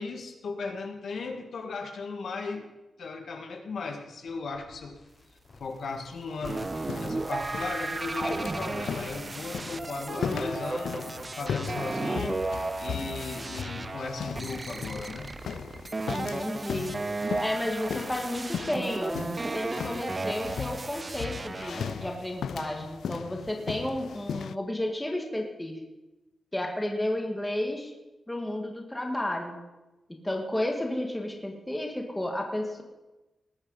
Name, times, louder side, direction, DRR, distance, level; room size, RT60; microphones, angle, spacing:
voice 1, 0.0-2.7 3.0-5.0 5.6-6.7 7.0-15.3, left 4 dB, 60° left, 4 dB, 1.7 m, -37 dB
sound 1, 4.3-9.3, left 2 dB, 40° left, 5.6 m, -52 dB
sound 2, 6.4-24.6, left 7 dB, 80° left, 0.3 m, -38 dB
sound 3, 6.4-22.2, right 3 dB, 20° right, 0.4 m, -34 dB
voice 2, 16.1-17.0 17.4-25.8 26.5-27.9 28.3-29.6 30.1-32.8, left 1 dB, 10° left, 2 dB, 1.7 m, -32 dB
19.5 x 8.8 x 5.4 m, 1.1 s
wide cardioid pair, 170°, 0 cm